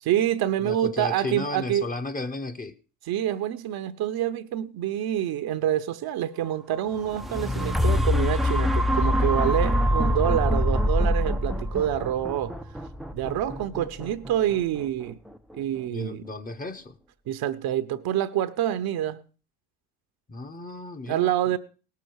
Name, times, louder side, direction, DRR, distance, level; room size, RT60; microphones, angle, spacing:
voice 1, 0.0-1.8 3.1-12.5 13.1-15.2 15.5-16.2 17.3-19.2 21.1-21.6, right 11 dB, 45° right, 1.0 m, -27 dB
voice 2, 0.6-2.8 15.9-17.0 20.3-21.6, left 2 dB, 15° left, 1.0 m, -34 dB
sound 1, 6.9-15.0 15.6-15.7, left 1 dB, ahead, 0.6 m, -25 dB
18.0 x 7.0 x 4.7 m
hypercardioid pair, 70°, 50 cm